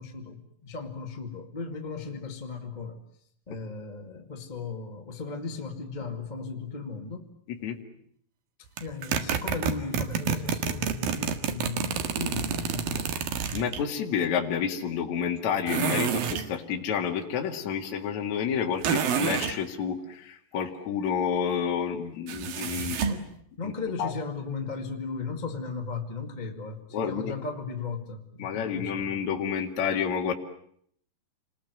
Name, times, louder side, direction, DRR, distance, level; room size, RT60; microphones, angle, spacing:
voice 1, 0.0-3.0 3.5-7.3 8.8-13.1 23.0-23.3 23.6-29.1, left 4 dB, 15° left, 2 dB, 1.7 m, -36 dB
sound 1, 8.8-13.8 15.7-16.5 18.8-19.6 22.3-23.2, right 7 dB, 75° right, 3.4 m, -28 dB
voice 2, 13.5-23.0 23.6-23.7 24.0-24.1 26.9-27.3 28.4-30.3, left 7 dB, 55° left, 2 dB, 3.3 m, -29 dB
28.5 x 21.5 x 9.4 m, 0.67 s
omnidirectional pair, 4.3 m